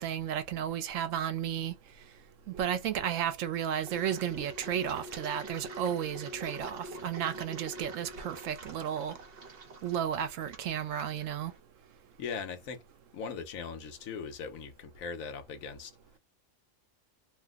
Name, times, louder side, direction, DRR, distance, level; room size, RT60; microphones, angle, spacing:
voice 1, 0.0-1.7 2.5-9.2 9.8-11.5, right 9 dB, 75° right, 0.9 m, -33 dB
Engine, 3.8-11.6, right 1 dB, 50° right, 0.9 m, -46 dB
voice 2, 12.2-12.8 13.1-16.0, left 5 dB, 80° left, 1.2 m, -39 dB
2.8 x 2.0 x 3.4 m
omnidirectional pair, 1.4 m